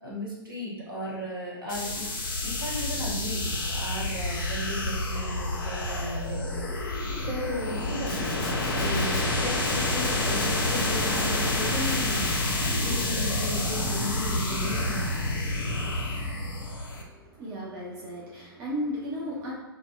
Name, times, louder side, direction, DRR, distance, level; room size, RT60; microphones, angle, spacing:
voice 1, 0.0-2.1 2.4-7.0 7.3-8.2 8.7-15.3, equal, 60° right, -5 dB, 1.0 m, -35 dB
sound 1, 1.7-17.0, left 2 dB, 55° left, 0.5 m, -28 dB
Domestic sounds home sounds, 8.0-9.3 9.6-11.3 11.9-13.3, left 2 dB, 25° left, 0.8 m, -41 dB
voice 2, 16.9-19.5, equal, 25° right, -5 dB, 0.4 m, -35 dB
2.6 x 2.2 x 2.2 m, 1.1 s
figure-of-eight pair, 115°, 13 cm